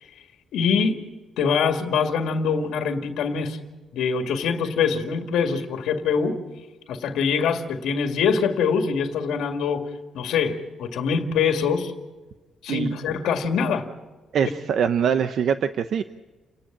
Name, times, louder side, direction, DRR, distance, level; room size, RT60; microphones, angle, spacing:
voice 1, 0.5-1.0 1.4-3.6 3.9-6.4 6.9-9.8 10.1-11.9 12.6-13.9, left 6 dB, 85° left, 5 dB, 2.1 m, -24 dB
voice 2, 14.3-16.0, right 7 dB, 60° right, 10 dB, 0.8 m, -23 dB
29.0 x 10.5 x 8.6 m, 1.2 s
cardioid pair, 135°, 0 cm